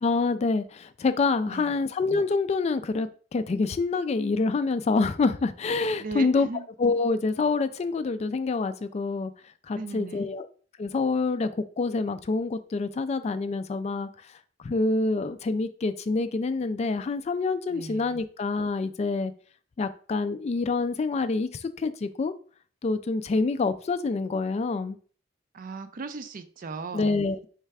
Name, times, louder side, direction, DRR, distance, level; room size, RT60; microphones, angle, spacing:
voice 1, 0.0-6.5 6.8-9.3 9.7-10.5 10.8-14.1 14.6-19.3 19.8-22.3 22.8-25.0 26.9-27.5, left 3 dB, 35° left, 11 dB, 0.3 m, -26 dB
voice 2, 6.0-6.7 9.7-10.3 17.7-18.2 25.5-27.5, right 3 dB, 45° right, 10 dB, 0.4 m, -38 dB
3.3 x 3.2 x 4.7 m, 0.42 s
head